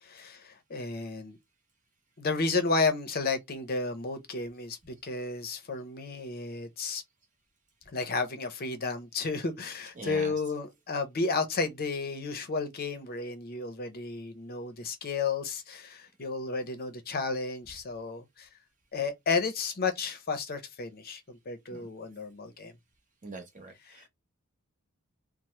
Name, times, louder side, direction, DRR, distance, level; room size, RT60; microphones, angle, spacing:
voice 1, 0.0-1.4 2.2-7.0 7.9-18.5 18.9-22.7, left 4 dB, 45° left, 0.6 m, -32 dB
voice 2, 9.9-10.3 21.7-21.9 23.2-24.1, right 3 dB, 35° right, 1.0 m, -43 dB
2.9 x 2.0 x 3.1 m
head